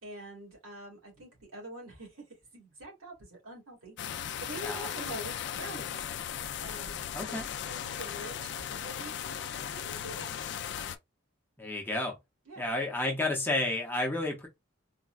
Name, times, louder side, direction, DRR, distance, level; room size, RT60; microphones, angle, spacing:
voice 1, 0.0-4.0 4.4-6.0 6.6-7.0 7.3-10.4 12.5-12.7, right 1 dB, 80° right, 2.0 m, -45 dB
sound 1, 4.0-11.0, left 9 dB, 55° left, 0.3 m, -37 dB
voice 2, 7.1-7.5 11.6-12.2 12.6-14.5, left 2 dB, 10° left, 0.7 m, -31 dB
4.0 x 2.2 x 2.3 m
head